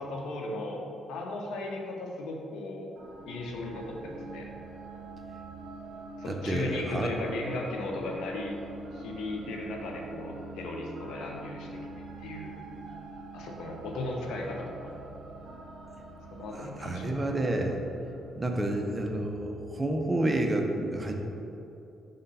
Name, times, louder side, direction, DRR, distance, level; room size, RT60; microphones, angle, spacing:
voice 1, 0.0-2.9 3.3-4.5 6.2-8.5 8.9-11.7 12.2-12.5 13.3-14.9 16.3-17.2, left 2 dB, 85° left, 0 dB, 0.9 m, -36 dB
sound 1, 3.0-19.2, right 2 dB, 65° right, 1.0 m, -45 dB
voice 2, 6.3-7.1 16.5-17.8 18.4-21.1, right 1 dB, 20° right, 2 dB, 0.7 m, -29 dB
5.4 x 3.8 x 5.4 m, 2.8 s
cardioid pair, 90°, 0 cm